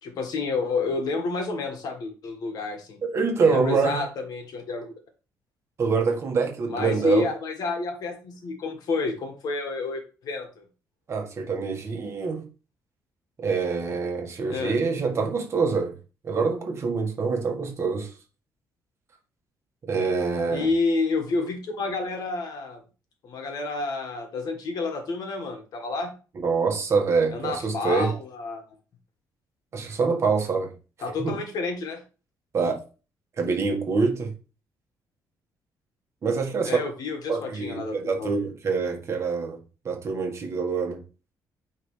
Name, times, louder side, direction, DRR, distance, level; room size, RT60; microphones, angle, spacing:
voice 1, 0.0-3.0 3.4-4.9 6.7-10.6 14.5-14.8 20.5-22.8 23.2-26.1 27.3-28.6 31.0-32.0 36.6-38.3, left 3 dB, 60° left, 1.5 m, -29 dB
voice 2, 3.0-4.0 5.8-7.3 11.1-12.4 13.4-15.9 16.2-18.1 19.8-20.7 26.4-28.1 29.7-30.7 31.2-31.3 32.5-32.8 33.4-34.3 36.2-36.8 37.3-39.6 39.8-41.0, right 4 dB, 40° right, 1.5 m, -25 dB
9.0 x 3.4 x 3.2 m
cardioid pair, 150°, 7 cm